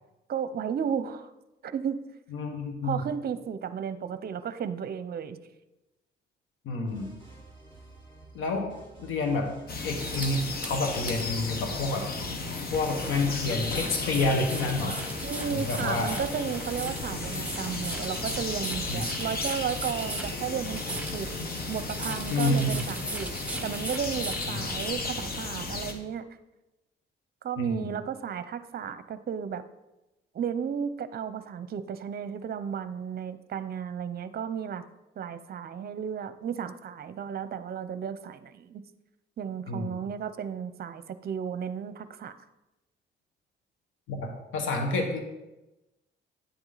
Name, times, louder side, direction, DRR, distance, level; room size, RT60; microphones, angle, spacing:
voice 1, 0.3-1.3 1.6-2.0 2.8-5.4 15.2-21.3 21.7-23.3 23.6-26.2 27.4-29.6 30.3-34.8 35.2-38.8 39.4-42.3, right 7 dB, 50° right, 13 dB, 0.7 m, -33 dB
voice 2, 2.3-3.0 6.6-7.1 8.3-8.7 9.0-9.5 9.8-12.1 12.7-14.9 15.5-16.2 18.9-19.0 22.3-22.8 24.5-24.6 27.6-27.9 39.7-40.0 44.1-45.2, left 2 dB, 85° left, 4 dB, 1.6 m, -29 dB
sound 1, 6.9-23.7, right 1 dB, 25° left, 3.7 m, -48 dB
sound 2, 9.7-25.9, left 3 dB, 50° left, 1.4 m, -35 dB
sound 3, 10.0-24.9, right 2 dB, 5° right, 1.1 m, -39 dB
10.0 x 7.9 x 4.1 m, 0.98 s
cardioid pair, 90°, 20 cm